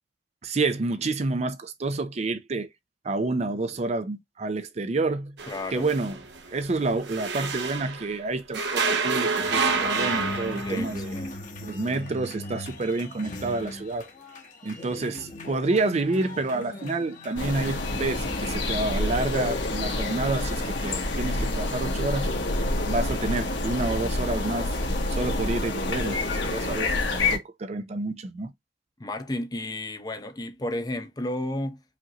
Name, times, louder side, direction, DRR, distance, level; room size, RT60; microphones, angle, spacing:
voice 1, 0.4-2.7 3.0-5.4 5.7-6.2 6.5-11.2 11.6-14.1 14.6-22.3 22.9-24.7 25.1-28.5, right 3 dB, 40° right, 0.4 m, -29 dB
sound 1, 5.4-8.2 8.5-11.0, right 4 dB, 80° right, 1.0 m, -28 dB
voice 2, 5.5-5.9 10.6-11.4 29.0-31.8, left 1 dB, 20° left, 0.7 m, -32 dB
sound 2, 9.4-20.7, left 1 dB, 45° left, 1.1 m, -40 dB
sound 3, 17.4-27.4, left 2 dB, 85° left, 1.4 m, -27 dB
5.1 x 2.6 x 2.9 m
head